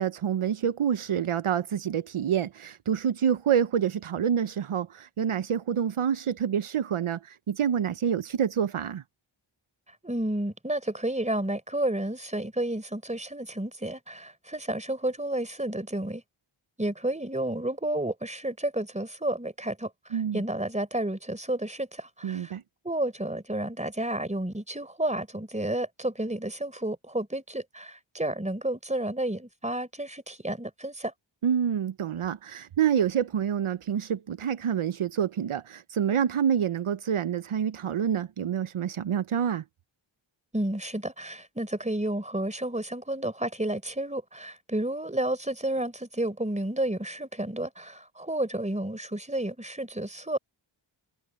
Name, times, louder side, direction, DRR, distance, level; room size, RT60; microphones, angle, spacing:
voice 1, 0.0-9.0 20.1-20.4 22.2-22.6 31.4-39.6, right 8 dB, 80° right, 0.7 m, -27 dB
voice 2, 10.0-16.2 16.8-22.6 22.8-31.1 40.5-50.4, right 1 dB, 15° right, 4.2 m, -31 dB
wide cardioid pair, 70°, 49 cm